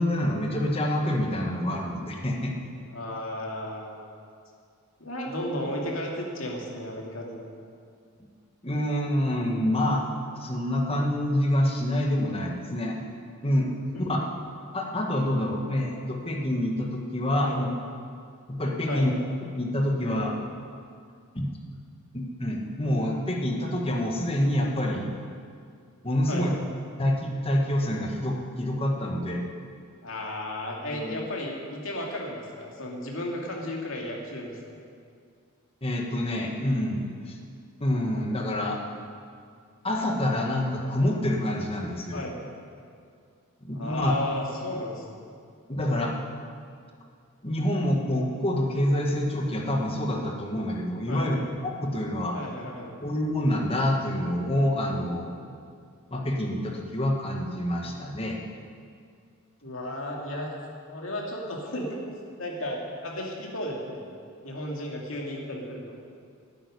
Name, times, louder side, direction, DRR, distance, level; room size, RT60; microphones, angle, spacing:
voice 1, 0.0-2.5 8.6-10.1 10.4-13.0 13.4-13.7 14.0-14.2 14.7-17.7 18.5-19.1 19.5-20.4 21.3-21.5 22.1-25.1 26.0-26.5 27.0-29.4 30.8-31.2 35.8-37.4 37.8-38.8 39.8-42.2 43.6-44.1 45.7-46.1 47.4-51.4 51.6-52.4 53.0-55.5 56.1-58.4, left 1 dB, 25° left, 0 dB, 1.7 m, -27 dB
voice 2, 2.9-4.0 5.0-7.4 13.9-14.2 17.4-17.6 18.9-19.1 26.3-26.5 30.0-34.8 42.1-42.4 43.7-45.3 51.1-51.3 52.3-52.9 59.6-60.5 60.9-64.1 64.4-66.0, left 1 dB, 65° left, -1 dB, 2.7 m, -34 dB
12.0 x 9.3 x 9.9 m, 2.2 s
head